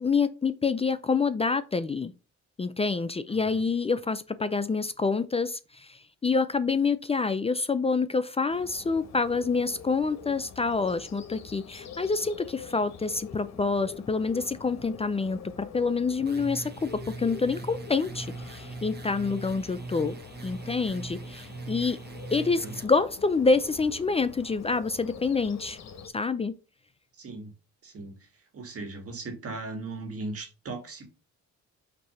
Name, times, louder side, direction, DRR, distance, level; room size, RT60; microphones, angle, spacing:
voice 1, 0.0-2.1 2.6-20.1 20.4-22.0 22.3-25.8 26.1-26.5, left 4 dB, 20° left, 0.4 m, -27 dB
voice 2, 3.3-3.7 22.5-22.8 27.1-27.5 27.8-31.1, right 3 dB, 50° right, 1.8 m, -38 dB
Bird, 8.5-26.1, left 7 dB, 60° left, 1.2 m, -45 dB
sound 1, 16.2-22.9, right 4 dB, 35° right, 1.0 m, -41 dB
6.0 x 2.8 x 5.5 m
cardioid pair, 90°, 30 cm